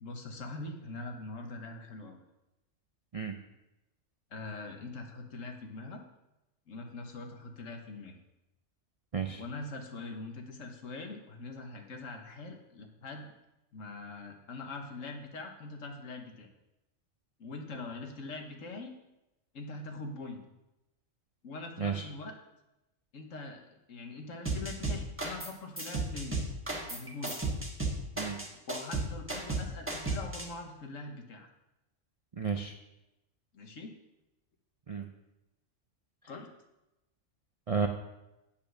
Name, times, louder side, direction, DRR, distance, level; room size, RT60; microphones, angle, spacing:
voice 1, 0.0-2.2 4.3-6.0 6.7-8.1 9.4-13.3 13.7-16.5 17.4-18.9 19.5-20.4 21.4-22.3 23.1-23.6 23.9-26.4 26.9-27.4 28.7-31.5 33.5-33.9 34.9-35.0 36.3-36.5, left 3 dB, 75° left, 4 dB, 1.5 m, -43 dB
sound 1, 24.4-25.5 25.8-30.4, right 2 dB, 10° right, 1.3 m, -34 dB
voice 2, 32.4-32.7 34.9-35.1 37.7-37.9, right 6 dB, 55° right, 5 dB, 0.4 m, -32 dB
8.6 x 5.8 x 6.4 m, 0.94 s
omnidirectional pair, 1.3 m